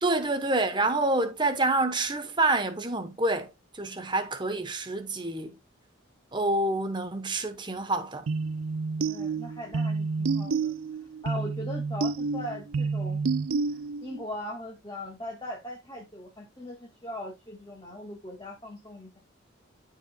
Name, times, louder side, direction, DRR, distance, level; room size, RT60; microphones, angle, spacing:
voice 1, 0.0-5.5 6.3-8.2, right 2 dB, 25° right, 1.0 m, -27 dB
sound 1, 8.3-14.2, right 4 dB, 90° right, 0.5 m, -29 dB
voice 2, 9.0-10.7 11.2-13.2 14.0-19.2, left 1 dB, 20° left, 2.1 m, -39 dB
14.0 x 4.8 x 2.3 m
head